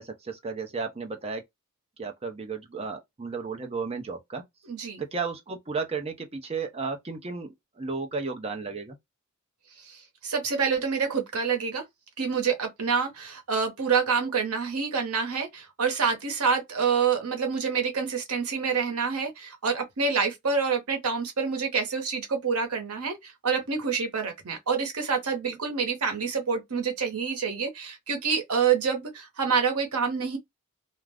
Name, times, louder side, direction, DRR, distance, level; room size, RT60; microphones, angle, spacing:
voice 1, 0.0-1.4 2.0-4.4 5.0-9.0, right 4 dB, 30° right, 0.6 m, -33 dB
voice 2, 4.7-5.0 9.8-11.8 12.2-30.4, right 5 dB, 85° right, 0.9 m, -27 dB
2.4 x 2.1 x 3.3 m
head